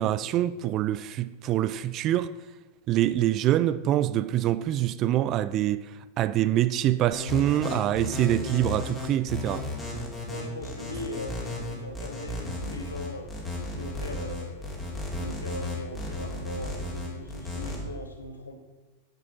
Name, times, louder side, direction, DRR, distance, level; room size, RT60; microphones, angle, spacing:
voice 1, 0.0-2.3 2.9-5.9 6.2-9.6, right 13 dB, 35° right, 0.4 m, -25 dB
sound 1, 7.1-17.8, left 2 dB, 15° left, 2.7 m, -34 dB
voice 2, 10.3-13.3 13.7-14.8 15.1-18.6, left 1 dB, 80° left, 1.3 m, -39 dB
7.5 x 7.5 x 6.1 m
figure-of-eight pair, 90°, 0 cm